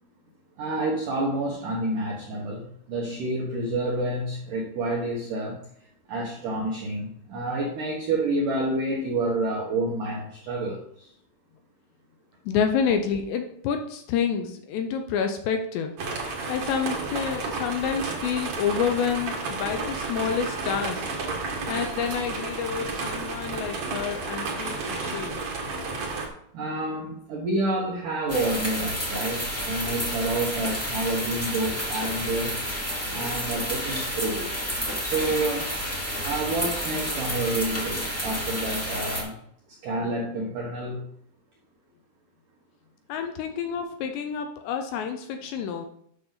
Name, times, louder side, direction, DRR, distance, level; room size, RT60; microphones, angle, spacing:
voice 1, 0.6-5.7 6.1-11.1 26.5-32.6 33.1-34.5 35.0-35.8 36.2-39.4 39.8-41.0, right 2 dB, 75° right, -2 dB, 1.9 m, -29 dB
voice 2, 12.5-16.0 16.5-21.0 21.5-25.4 43.1-45.9, left 7 dB, 80° left, 5 dB, 2.7 m, -28 dB
sound 1, 16.0-26.3, right 3 dB, 60° right, 1.8 m, -32 dB
sound 2, 28.3-39.2, equal, 10° left, 0.8 m, -30 dB
8.7 x 6.5 x 3.9 m, 0.69 s
omnidirectional pair, 5.5 m